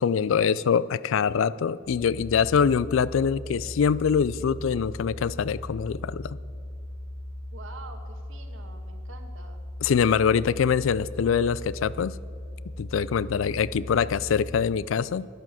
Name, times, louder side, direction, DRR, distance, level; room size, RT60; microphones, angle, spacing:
voice 1, 0.0-6.4 9.8-12.2 12.8-15.3, left 6 dB, 70° left, 19 dB, 0.4 m, -24 dB
sound 1, 1.8-14.6, left 1 dB, 35° left, 1.4 m, -38 dB
voice 2, 7.5-9.7 10.3-10.6 13.2-13.3, right 3 dB, 70° right, 6 dB, 1.4 m, -47 dB
11.0 x 10.5 x 7.4 m, 2.2 s
head